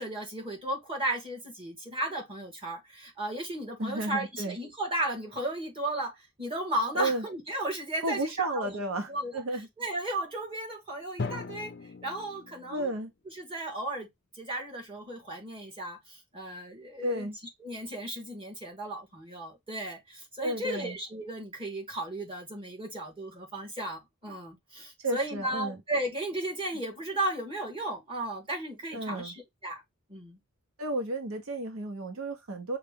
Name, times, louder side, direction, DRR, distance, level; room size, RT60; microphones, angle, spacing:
voice 1, 0.0-8.7 9.1-9.4 9.8-11.7 12.0-12.9 13.3-14.1 14.3-17.3 17.6-29.8 30.1-30.4, right 1 dB, 25° right, 1.8 m, -35 dB
voice 2, 3.8-4.6 6.9-7.2 8.0-9.7 12.7-13.1 17.0-17.3 20.4-21.0 25.0-25.8 28.9-29.3 30.8-32.8, right 1 dB, 85° right, 0.9 m, -32 dB
Drum, 11.2-13.1, left 3 dB, 50° left, 0.5 m, -38 dB
5.7 x 2.4 x 3.6 m
head